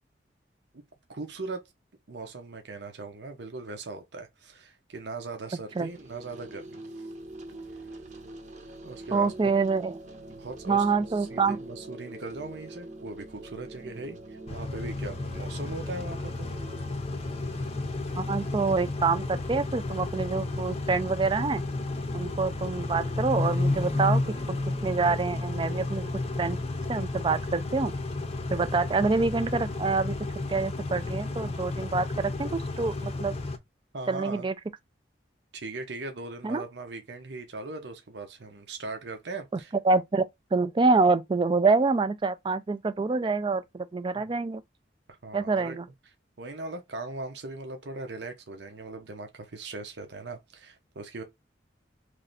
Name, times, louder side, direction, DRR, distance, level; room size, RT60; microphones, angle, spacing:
voice 1, 1.1-1.6 2.1-7.1 8.8-9.5 10.3-16.5 33.9-34.5 35.5-39.7 44.2-44.3 45.1-45.8 46.4-51.2, right 3 dB, 70° right, 0.8 m, -39 dB
sound 1, 5.7-25.5, right 2 dB, 40° right, 0.8 m, -46 dB
voice 2, 9.1-10.0 10.7-11.6 18.2-21.6 22.1-24.2 24.5-24.6 24.8-26.1 26.4-26.6 26.9-27.9 28.5-30.2 30.5-33.3 34.1-34.5 36.4-36.6 39.8-40.3 40.5-44.6 45.3-45.9, right 4 dB, 25° right, 0.3 m, -26 dB
Car / Idling / Accelerating revving vroom, 14.5-33.6, left 2 dB, 35° left, 0.6 m, -32 dB
3.2 x 2.6 x 3.9 m
head